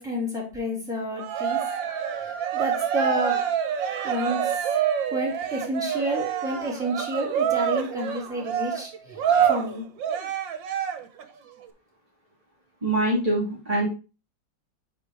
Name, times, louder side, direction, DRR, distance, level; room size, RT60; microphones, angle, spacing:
voice 1, 0.0-1.6 2.2-3.5 4.0-4.7 5.1-9.2 9.5-9.8, equal, ahead, -3 dB, 3.2 m, -30 dB
Cheering, 1.2-11.2, right 8 dB, 90° right, 1.7 m, -26 dB
voice 2, 12.8-13.9, right 1 dB, 20° right, -5 dB, 2.0 m, -24 dB
8.2 x 3.8 x 4.7 m, 0.32 s
omnidirectional pair, 2.0 m